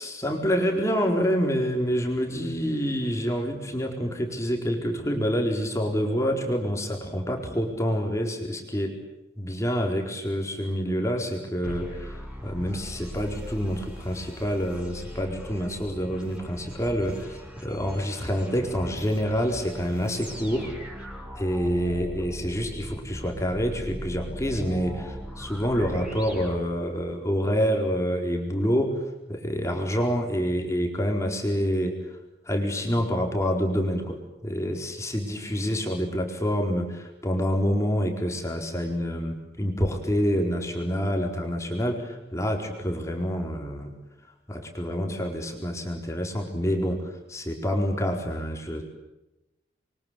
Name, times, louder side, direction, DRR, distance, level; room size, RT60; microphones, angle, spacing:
voice 1, 0.0-8.9 9.4-20.7 21.4-29.0 29.3-32.0 32.5-43.9 44.5-48.8, equal, 15° left, 2 dB, 4.5 m, -27 dB
sound 1, 11.6-27.2, equal, 5° right, 7.5 m, -39 dB
28.5 x 24.0 x 8.7 m, 0.99 s
head